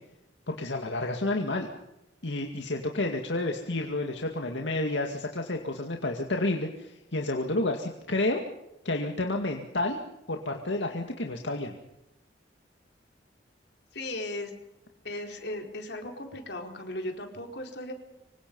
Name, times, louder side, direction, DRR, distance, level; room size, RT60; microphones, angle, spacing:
voice 1, 0.5-1.7 2.2-8.4 8.8-10.0 10.3-11.7, left 2 dB, 85° left, 3 dB, 2.2 m, -30 dB
voice 2, 13.9-14.5 15.0-17.9, left 1 dB, 65° left, 3 dB, 4.6 m, -37 dB
26.0 x 25.0 x 5.5 m, 0.92 s
head